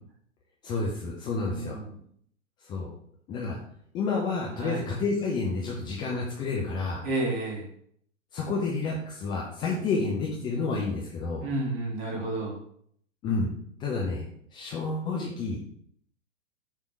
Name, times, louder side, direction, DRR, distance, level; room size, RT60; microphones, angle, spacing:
voice 1, 0.6-1.8 2.6-2.9 3.3-3.6 3.9-7.0 8.3-11.5 13.2-13.5 13.8-14.2 14.5-15.6, left 4 dB, 10° left, -3 dB, 0.6 m, -30 dB
voice 2, 1.3-1.9 4.6-4.8 7.0-7.7 11.4-12.6, right 2 dB, 40° right, -1 dB, 2.5 m, -31 dB
6.6 x 3.5 x 5.9 m, 0.65 s
figure-of-eight pair, 110°, 39 cm